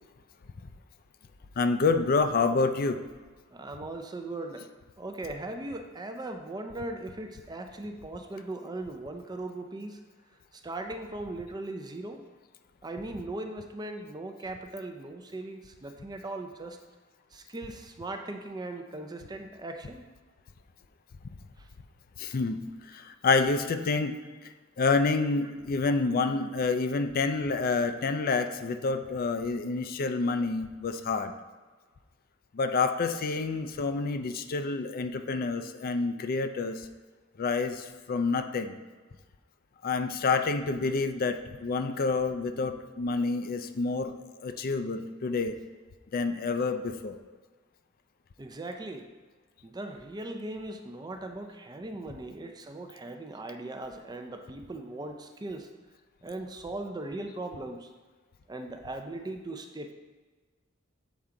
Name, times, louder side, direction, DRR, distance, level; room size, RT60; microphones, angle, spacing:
voice 1, 1.6-3.0 22.2-22.6 22.9-24.1 24.8-31.3 32.5-36.8 37.4-38.7 39.8-44.1 44.4-45.6 46.1-47.2, left 4 dB, 45° left, 8 dB, 0.4 m, -28 dB
voice 2, 3.5-4.7 5.0-10.0 10.5-12.2 12.8-16.8 17.3-20.1 23.8-23.9 48.4-49.1 49.6-55.7 56.2-57.9 58.5-59.9, right 2 dB, 20° right, 5 dB, 0.5 m, -39 dB
7.2 x 4.6 x 3.8 m, 1.4 s
head